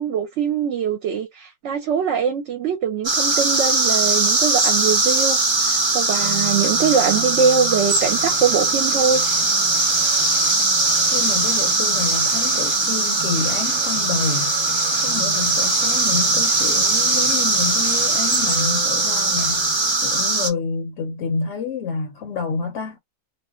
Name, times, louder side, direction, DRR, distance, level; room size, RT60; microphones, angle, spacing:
voice 1, 0.0-5.4 5.6-9.2, right 6 dB, 65° right, 0.8 m, -22 dB
sound 1, 3.0-20.5, right 3 dB, 40° right, 0.4 m, -20 dB
sound 2, 6.2-20.0, left 4 dB, 35° left, 0.6 m, -37 dB
voice 2, 11.1-14.5 15.0-19.7 20.0-23.0, left 5 dB, 65° left, 0.9 m, -28 dB
2.4 x 2.0 x 3.6 m
omnidirectional pair, 1.4 m